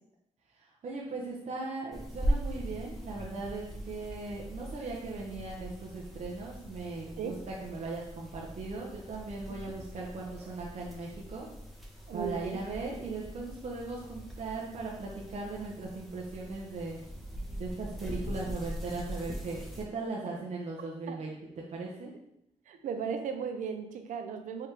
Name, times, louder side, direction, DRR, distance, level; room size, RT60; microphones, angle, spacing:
voice 1, 0.6-11.5 12.1-17.0 17.6-21.4 21.7-22.1, right 3 dB, 60° right, -4 dB, 0.8 m, -38 dB
sound 1, 1.9-19.8, equal, ahead, 1.1 m, -40 dB
voice 2, 12.1-12.6 21.1-21.2 22.7-24.7, right 6 dB, 85° right, 6 dB, 0.5 m, -36 dB
4.8 x 3.0 x 3.4 m, 0.80 s
cardioid pair, 75°, 13 cm